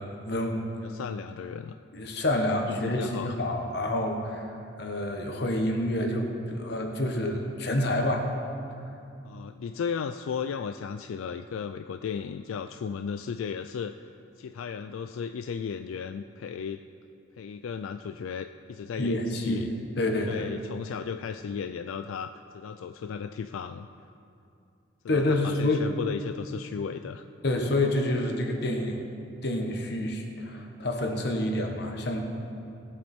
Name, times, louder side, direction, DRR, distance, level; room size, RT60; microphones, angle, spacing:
voice 1, 0.0-1.0 1.9-4.5 4.8-8.3 19.0-19.7 20.0-20.5 25.1-25.8 27.4-29.0 29.4-32.2, left 1 dB, 55° left, 3 dB, 1.2 m, -28 dB
voice 2, 0.8-1.8 2.7-3.3 9.2-14.1 14.4-16.8 17.4-19.7 20.2-23.9 25.0-27.3, left 6 dB, 85° left, 9 dB, 0.3 m, -35 dB
18.5 x 7.4 x 4.4 m, 2.6 s
head